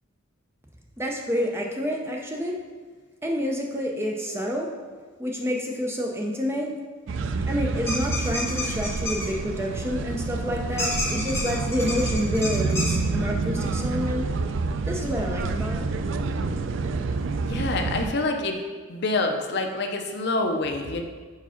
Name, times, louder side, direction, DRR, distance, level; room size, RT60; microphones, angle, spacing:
voice 1, 1.0-2.6 3.2-4.7 5.2-6.7 7.5-14.3 14.9-15.8, left 1 dB, 10° right, 0 dB, 0.6 m, -28 dB
sound 1, 7.1-18.1, right 3 dB, 60° right, 0.3 m, -28 dB
sound 2, 7.9-9.3 10.8-12.9, left 2 dB, 10° left, 1.2 m, -30 dB
voice 2, 17.5-18.6 18.9-21.0, left 2 dB, 55° left, 4 dB, 0.6 m, -26 dB
4.8 x 4.6 x 5.7 m, 1.5 s
head